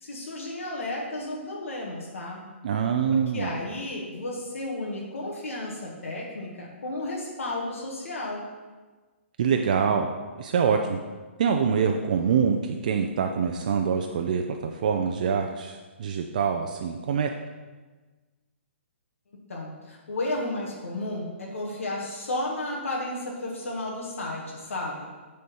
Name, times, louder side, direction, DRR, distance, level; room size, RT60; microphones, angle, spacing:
voice 1, 0.0-2.4 3.1-8.5 19.5-25.2, left 2 dB, 90° left, -3 dB, 1.8 m, -33 dB
voice 2, 2.6-3.5 9.4-10.1 10.4-11.0 11.4-17.3, right 6 dB, 35° right, 4 dB, 0.4 m, -25 dB
9.6 x 4.4 x 5.4 m, 1.3 s
hypercardioid pair, 175°, 7 cm